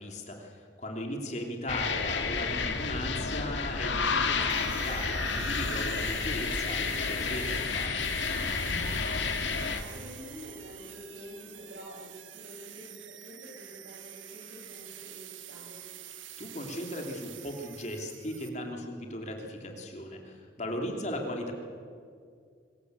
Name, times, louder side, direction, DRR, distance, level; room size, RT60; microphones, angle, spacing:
voice 1, 0.0-8.1 16.4-21.5, left 1 dB, 35° left, 2 dB, 3.2 m, -37 dB
sound 1, 1.7-9.8, left 4 dB, 75° left, 2.1 m, -30 dB
sound 2, 4.5-18.5, right 9 dB, 85° right, 1.6 m, -45 dB
voice 2, 8.8-15.9 20.8-21.2, equal, 65° right, -1 dB, 7.8 m, -48 dB
25.0 x 21.5 x 8.3 m, 2.2 s
head